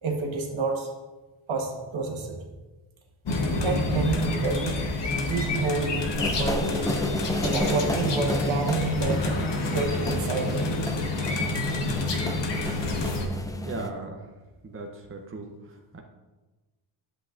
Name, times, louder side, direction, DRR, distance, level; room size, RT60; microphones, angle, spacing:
voice 1, 0.0-0.9 1.5-2.4 3.6-4.8 5.2-7.0 7.4-10.8, right 4 dB, 75° right, 2 dB, 1.4 m, -29 dB
sound 1, 3.2-13.3, left 2 dB, 60° left, 1.1 m, -28 dB
sound 2, 6.2-13.9, left 2 dB, 10° left, 0.4 m, -33 dB
voice 2, 13.6-14.2 14.6-15.5 15.9-16.0, right 3 dB, 25° right, 2 dB, 0.7 m, -36 dB
11.0 x 8.0 x 2.5 m, 1.2 s
wide cardioid pair, 160°, 48 cm